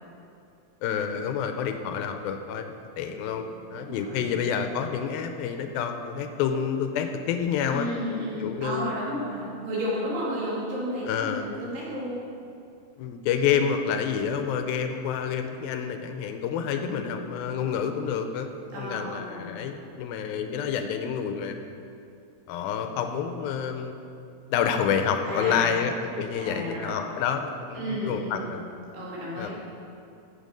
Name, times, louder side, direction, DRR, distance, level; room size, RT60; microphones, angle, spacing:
voice 1, 0.8-7.9 8.4-8.9 11.1-11.5 13.0-18.5 18.8-21.6 22.5-24.0 24.5-28.6 29.4-29.5, left 7 dB, 80° left, 7 dB, 2.2 m, -28 dB
voice 2, 3.1-3.4 3.7-4.3 7.7-12.2 16.8-17.2 18.7-19.5 25.2-25.8 26.4-27.1 27.8-28.5 28.9-29.5, equal, 80° right, -7 dB, 4.9 m, -33 dB
13.5 x 7.7 x 5.2 m, 2.7 s
omnidirectional pair, 4.6 m